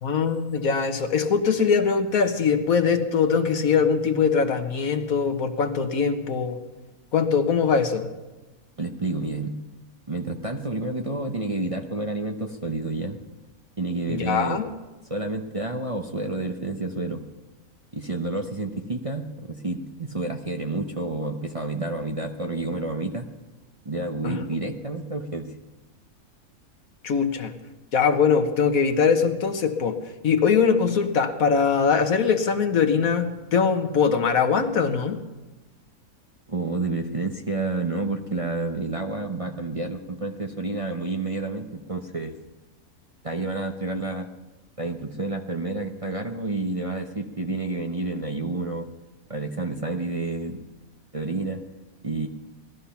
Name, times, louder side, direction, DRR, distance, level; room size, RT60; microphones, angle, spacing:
voice 1, 0.0-6.6 7.1-8.1 14.1-14.6 24.2-24.3 27.0-27.5 27.9-30.0 30.2-35.2, left 6 dB, 75° left, 7 dB, 1.6 m, -22 dB
voice 2, 8.8-9.6 10.1-13.2 13.8-14.6 15.1-17.2 17.9-23.3 23.8-25.5 36.5-42.4 43.2-44.3 44.8-48.9 49.3-50.6 51.1-51.7 52.0-52.3, right 2 dB, 30° right, 3 dB, 0.8 m, -29 dB
18.5 x 13.5 x 5.7 m, 1.1 s
omnidirectional pair, 1.5 m